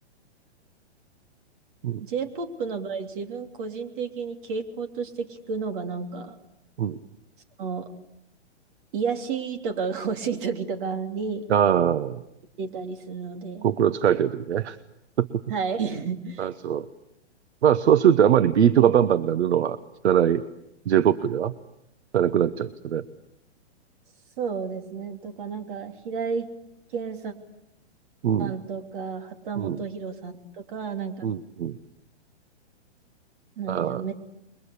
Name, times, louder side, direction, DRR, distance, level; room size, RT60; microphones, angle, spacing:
voice 1, 2.0-6.4 7.6-7.9 8.9-11.5 12.6-13.7 15.5-16.5 24.4-26.5 26.9-27.3 28.4-31.3 33.6-34.1, right 5 dB, 45° right, 6 dB, 3.3 m, -31 dB
voice 2, 11.5-12.2 13.6-14.8 15.2-15.3 16.4-16.8 17.6-19.8 20.0-20.4 20.9-21.5 22.1-23.0 28.2-28.5 29.6-29.8 31.2-31.8 33.7-34.0, right 9 dB, 70° right, 13 dB, 1.2 m, -21 dB
28.5 x 23.0 x 8.4 m, 0.82 s
hypercardioid pair, 155°, 34 cm